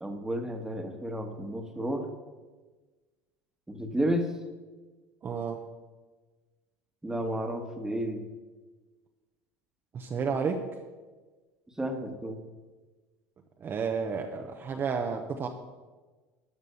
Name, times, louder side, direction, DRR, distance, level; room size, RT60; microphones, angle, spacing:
voice 1, 0.0-2.1 3.7-4.3 7.0-8.2 11.8-12.4, equal, 10° right, 5 dB, 1.4 m, -32 dB
voice 2, 5.2-5.6 9.9-10.6 13.6-15.5, right 5 dB, 30° right, 4 dB, 0.9 m, -31 dB
12.5 x 6.0 x 6.9 m, 1.3 s
supercardioid pair, 120°, 7 cm